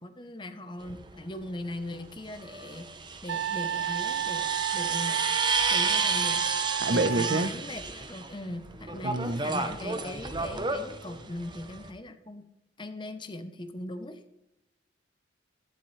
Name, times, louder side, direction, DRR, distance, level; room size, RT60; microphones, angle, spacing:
voice 1, 0.0-5.2 5.7-6.4 6.9-12.5 12.8-14.2, left 1 dB, 25° left, 9 dB, 0.8 m, -39 dB
sound 1, 0.8-0.9 2.3-8.3 8.6-11.9, right 4 dB, 25° right, 0.8 m, -31 dB
Wind instrument woodwind instrument, 3.3-7.5, right 9 dB, 80° right, 0.3 m, -31 dB
voice 2, 6.8-7.5 9.0-9.4, right 2 dB, 60° right, 12 dB, 0.8 m, -27 dB
12.0 x 11.0 x 3.2 m, 0.88 s
head